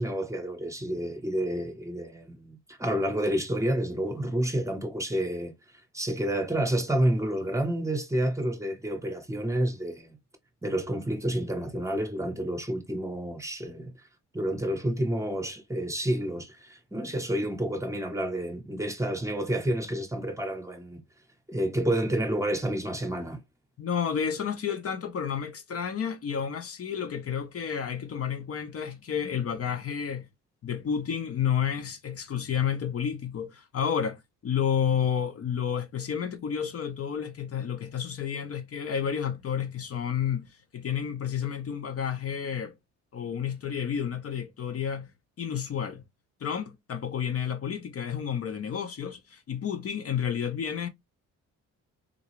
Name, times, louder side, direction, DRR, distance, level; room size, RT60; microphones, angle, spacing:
voice 1, 0.0-5.5 5.9-10.2 10.6-13.9 14.3-21.0 21.5-23.4, right 1 dB, 10° right, 0.8 m, -29 dB
voice 2, 23.8-30.3 30.6-42.7 43.1-45.1 45.4-46.0 46.4-50.9, left 8 dB, 50° left, 0.7 m, -30 dB
3.9 x 2.3 x 3.0 m
cardioid pair, 90°, 30 cm